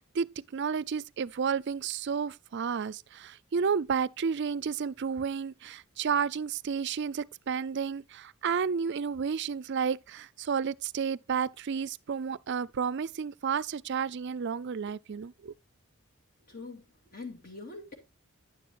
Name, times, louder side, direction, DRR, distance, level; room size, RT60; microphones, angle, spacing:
voice 1, 0.0-15.5, right 6 dB, 55° right, 0.4 m, -31 dB
voice 2, 16.5-16.9 17.1-17.9, left 3 dB, 45° left, 2.4 m, -43 dB
11.0 x 10.0 x 2.5 m
head